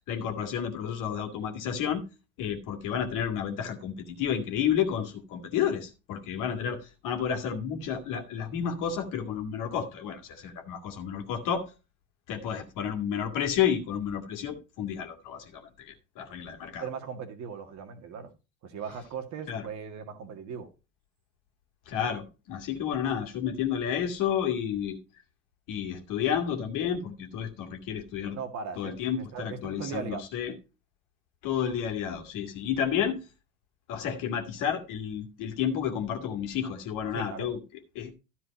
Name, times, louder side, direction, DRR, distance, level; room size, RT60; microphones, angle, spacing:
voice 1, 0.1-2.0 2.4-11.7 12.3-16.8 19.5-19.7 21.9-25.0 25.7-28.4 28.8-30.5 31.4-33.3 33.9-37.6 38.0-38.1, left 8 dB, 50° left, 2.1 m, -31 dB
voice 2, 16.8-18.3 18.6-20.7 28.3-30.2 37.1-37.5, right 6 dB, 45° right, 1.9 m, -38 dB
13.0 x 4.6 x 5.2 m
figure-of-eight pair, 65°, 40 cm